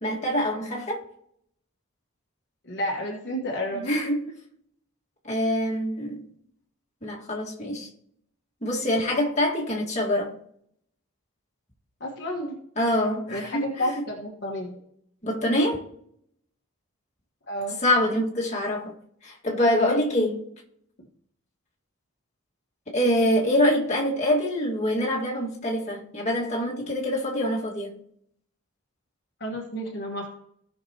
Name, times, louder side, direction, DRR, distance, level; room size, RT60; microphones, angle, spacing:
voice 1, 0.0-1.0 3.7-4.2 5.2-6.2 7.0-7.9 8.6-10.3 12.8-13.9 15.2-15.8 17.8-18.9 19.2-20.4 22.9-27.9, left 1 dB, 35° left, 1.8 m, -25 dB
voice 2, 2.6-3.9 12.0-12.6 13.3-14.8 17.5-17.8 29.4-30.3, equal, 50° left, 1.4 m, -31 dB
17.0 x 5.9 x 2.9 m
head